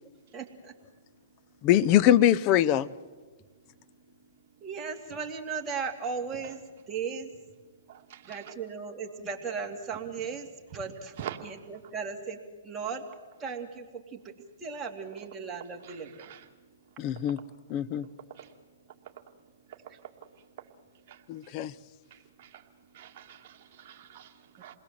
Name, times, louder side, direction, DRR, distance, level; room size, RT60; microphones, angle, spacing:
voice 1, 0.0-0.7 4.6-7.3 8.2-11.1 11.4-13.1 13.4-16.3 19.9-20.0, right 5 dB, 15° right, 2.9 m, -37 dB
voice 2, 1.6-2.9 17.0-17.4 17.7-18.1 21.3-21.7, left 11 dB, 35° left, 0.8 m, -23 dB
voice 3, 7.9-8.3 11.2-11.4 16.2-16.4 18.3-18.5 21.1-21.5 22.1-22.6 22.9-24.7, right 10 dB, 45° right, 2.2 m, -45 dB
28.5 x 20.5 x 7.6 m
hypercardioid pair, 140°, 0 cm